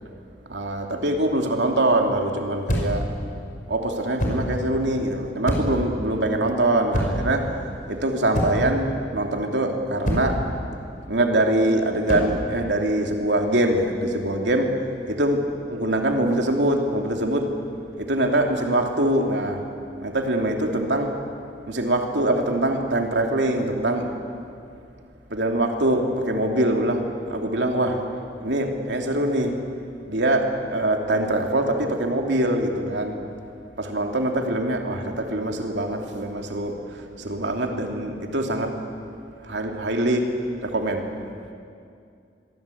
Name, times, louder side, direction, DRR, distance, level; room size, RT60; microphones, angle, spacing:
voice 1, 0.4-3.1 3.7-7.5 7.9-10.4 11.1-14.8 15.1-17.5 18.0-19.6 20.0-21.2 21.7-24.2 25.3-28.0 28.4-29.6 30.0-33.2 33.8-38.8 39.4-40.3 40.6-41.1, right 1 dB, 85° right, 2 dB, 2.9 m, -23 dB
sound 1, 2.7-3.1 4.2-4.5 5.4-5.9 6.9-7.3 8.3-8.8 10.0-10.4 12.0-12.4, equal, 45° left, 5.3 m, -25 dB
26.0 x 23.0 x 8.6 m, 2.4 s
head